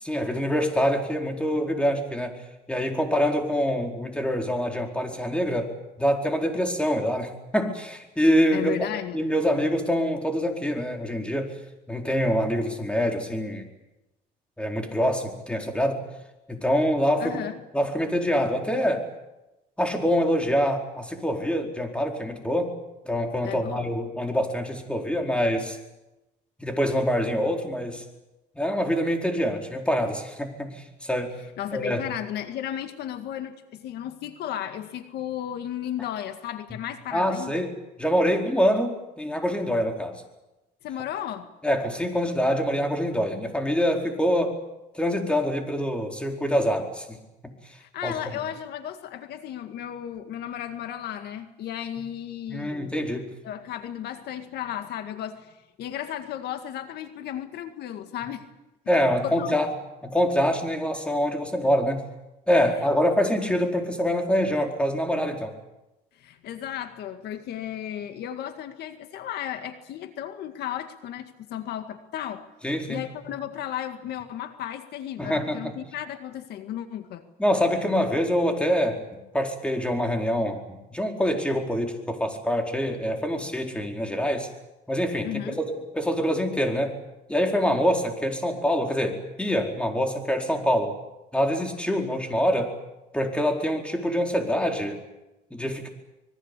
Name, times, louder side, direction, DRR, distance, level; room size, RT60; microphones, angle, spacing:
voice 1, 0.0-2.4 2.7-5.7 6.0-8.7 9.1-11.5 11.9-13.7 14.6-16.0 16.5-17.4 17.7-19.1 19.8-22.7 23.0-25.8 26.6-28.0 28.5-31.4 31.7-32.0 36.7-36.8 37.1-40.2 41.6-44.6 44.9-47.2 48.0-48.2 52.5-53.3 58.9-59.7 60.0-62.0 62.5-65.5 72.6-73.0 75.2-75.7 77.4-84.5 84.9-86.9 87.3-90.9 91.3-92.7 93.1-95.0 95.5-95.9, equal, 5° left, 3 dB, 4.6 m, -25 dB
voice 2, 8.5-9.2 17.2-17.6 23.4-23.9 31.6-37.6 40.8-41.5 47.7-52.9 53.4-58.5 59.2-59.5 66.2-72.5 72.9-77.2 85.2-85.6, left 10 dB, 75° left, 8 dB, 2.0 m, -34 dB
25.5 x 22.0 x 8.4 m, 0.98 s
cardioid pair, 110°, 17 cm